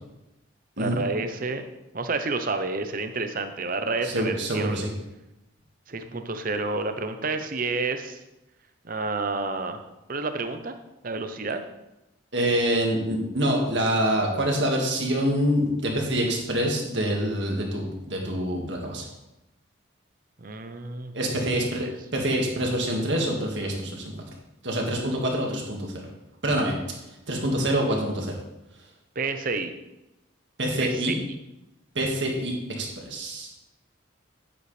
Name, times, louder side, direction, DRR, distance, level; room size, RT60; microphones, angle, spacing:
voice 1, 0.8-1.6 1.9-4.9 5.9-8.2 8.8-9.8 10.1-10.8 11.0-11.6 20.4-21.1 21.4-21.9 29.2-29.7 30.8-31.1, right 3 dB, 45° right, 8 dB, 0.8 m, -30 dB
voice 2, 4.0-4.9 12.3-19.1 21.1-21.9 22.1-24.1 24.6-26.1 26.4-26.7 27.3-28.3 30.6-31.2 32.0-33.5, right 1 dB, 60° right, 0 dB, 1.9 m, -26 dB
9.6 x 9.5 x 3.3 m, 0.94 s
head